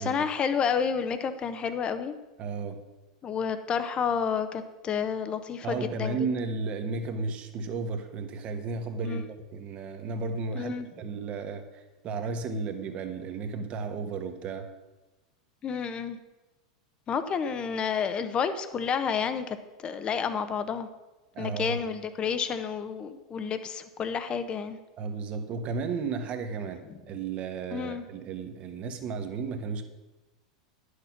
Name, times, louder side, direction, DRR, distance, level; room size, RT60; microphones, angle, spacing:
voice 1, 0.0-2.1 3.2-6.2 9.0-9.2 10.5-10.9 15.6-16.2 17.1-19.6 19.8-20.9 21.4-24.8 27.7-28.0, left 6 dB, 30° left, 10 dB, 0.9 m, -30 dB
voice 2, 2.4-2.8 5.6-14.7 21.3-21.8 25.0-29.8, right 4 dB, 40° right, 6 dB, 1.3 m, -34 dB
10.5 x 6.6 x 5.9 m, 1.1 s
hypercardioid pair, 95°, 3 cm